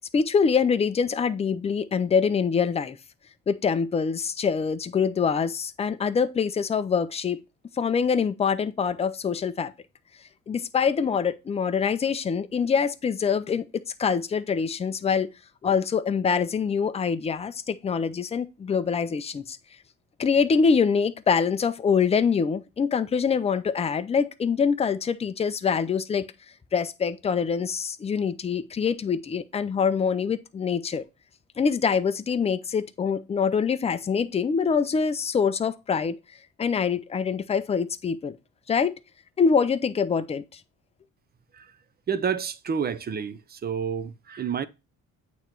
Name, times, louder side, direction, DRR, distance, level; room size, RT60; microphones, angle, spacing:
voice 1, 0.1-3.0 3.5-7.4 7.8-9.7 10.5-15.3 15.6-19.6 20.2-26.2 26.7-31.0 31.6-36.2 36.6-38.4 38.7-38.9 39.4-40.6, left 6 dB, 20° left, 0.4 m, -24 dB
voice 2, 42.1-44.7, right 7 dB, 30° right, 0.5 m, -29 dB
8.6 x 3.1 x 4.5 m
cardioid pair, 130°, 32 cm